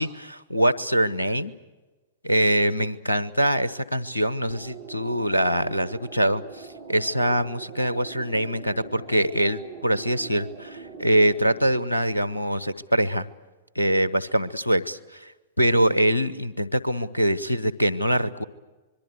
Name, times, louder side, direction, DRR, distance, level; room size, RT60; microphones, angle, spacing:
voice 1, 0.0-1.5 2.2-13.3 13.7-15.0 15.6-18.4, right 1 dB, 85° left, 15 dB, 1.0 m, -23 dB
sound 1, 4.5-11.7, right 5 dB, 60° right, 5.7 m, -42 dB
25.5 x 22.5 x 8.1 m, 1.2 s
figure-of-eight pair, 105°, 0 cm